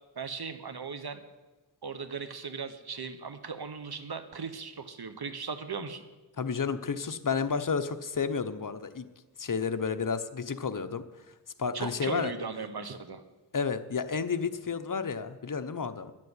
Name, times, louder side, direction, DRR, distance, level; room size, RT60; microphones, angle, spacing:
voice 1, 0.2-1.2 1.8-6.0 11.7-13.2, right 5 dB, 65° right, 9 dB, 1.3 m, -38 dB
voice 2, 6.4-9.1 9.4-11.0 11.6-12.3 13.5-16.1, left 5 dB, 50° left, 10 dB, 0.9 m, -31 dB
10.5 x 7.6 x 9.8 m, 1.2 s
wide cardioid pair, 55°, 41 cm